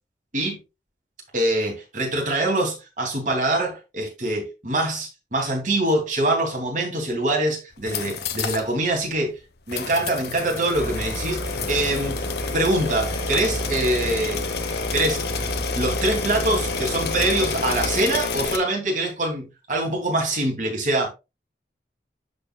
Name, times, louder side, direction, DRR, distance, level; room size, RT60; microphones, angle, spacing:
voice 1, 1.3-9.4 9.7-12.3 12.5-14.4 14.9-15.3 15.7-21.1, right 1 dB, 45° right, 2.6 m, -24 dB
sound 1, 7.7-8.7 9.0-9.1 9.7-18.6, left 5 dB, 70° left, 0.9 m, -30 dB
sound 2, 10.7-18.0, equal, 15° left, 1.6 m, -31 dB
12.5 x 4.5 x 2.3 m
head